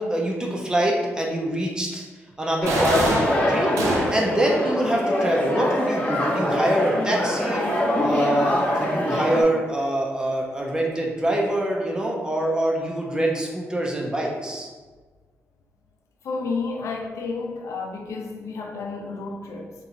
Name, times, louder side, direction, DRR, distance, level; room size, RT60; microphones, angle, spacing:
voice 1, 0.0-2.0 2.4-3.7 4.1-7.6 8.0-14.7, right 1 dB, 15° right, -1 dB, 0.7 m, -24 dB
sound 1, 2.6-9.4, left 1 dB, 25° left, 0.9 m, -24 dB
sound 2, 2.7-4.4, right 2 dB, 80° right, 0.5 m, -26 dB
voice 2, 16.2-19.7, left 4 dB, 75° left, 2 dB, 0.5 m, -31 dB
3.6 x 2.8 x 2.6 m, 1.4 s
cardioid pair, 65°, 5 cm